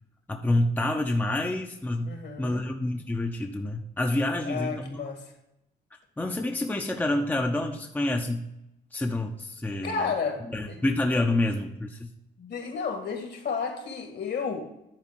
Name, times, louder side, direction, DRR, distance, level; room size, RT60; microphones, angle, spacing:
voice 1, 0.3-5.0 6.2-8.4 8.9-10.0 10.5-12.1, left 1 dB, 10° left, 3 dB, 0.8 m, -28 dB
voice 2, 2.1-2.6 4.4-5.3 9.8-10.8 12.4-14.6, left 5 dB, 60° left, 4 dB, 1.9 m, -32 dB
10.5 x 4.2 x 5.9 m, 0.85 s
cardioid pair, 90°, 20 cm